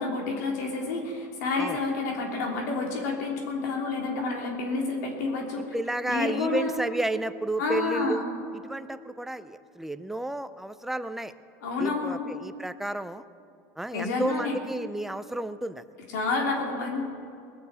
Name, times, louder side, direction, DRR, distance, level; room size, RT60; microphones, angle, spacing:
voice 1, 0.0-5.7 6.1-6.7 7.6-8.2 11.6-12.2 13.9-14.6 16.1-17.0, left 3 dB, 85° left, 0 dB, 3.2 m, -29 dB
voice 2, 5.6-8.2 8.5-11.3 11.8-13.2 13.8-15.8, right 1 dB, 5° right, 12 dB, 0.4 m, -32 dB
20.0 x 7.0 x 8.1 m, 2.5 s
supercardioid pair, 155°, 9 cm